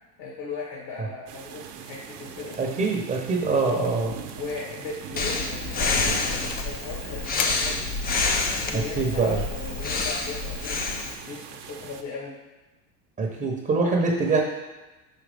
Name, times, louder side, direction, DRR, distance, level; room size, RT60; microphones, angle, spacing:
voice 1, 0.2-2.6 3.6-4.0 4.3-7.9 8.6-10.8 11.2-12.3, left 4 dB, 55° left, -3 dB, 1.5 m, -37 dB
sound 1, 1.3-12.0, right 7 dB, 75° right, 0.8 m, -41 dB
sound 2, 2.5-2.8 3.1-3.7 4.3-4.5 4.9-5.2 5.7-6.8 7.3-8.3, left 8 dB, 85° left, 0.6 m, -37 dB
voice 2, 2.6-4.1 8.7-9.4 13.2-14.4, right 4 dB, 15° right, 0 dB, 0.8 m, -24 dB
Breathing, 5.2-11.1, left 3 dB, 20° left, 0.4 m, -28 dB
5.7 x 5.1 x 3.4 m, 1.1 s
supercardioid pair, 115°, 47 cm